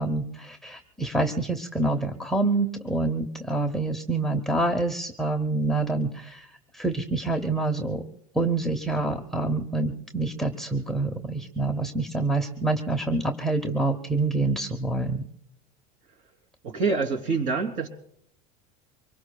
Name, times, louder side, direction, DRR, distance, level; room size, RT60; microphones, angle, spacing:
voice 1, 0.0-6.5 6.7-8.0 8.3-15.2, right 2 dB, ahead, 7 dB, 0.8 m, -27 dB
voice 2, 16.6-17.9, right 4 dB, 45° right, 5 dB, 3.2 m, -26 dB
24.5 x 22.0 x 2.3 m, 0.70 s
supercardioid pair, 155°, 19 cm